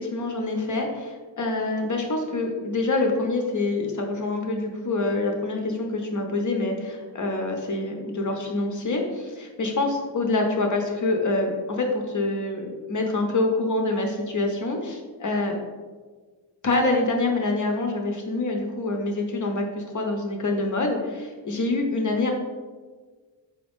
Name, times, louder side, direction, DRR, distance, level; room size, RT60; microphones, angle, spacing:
voice 1, 0.0-15.6 16.6-22.3, left 2 dB, 40° left, 2 dB, 0.5 m, -26 dB
4.4 x 2.5 x 3.4 m, 1.4 s
cardioid pair, 100°, 49 cm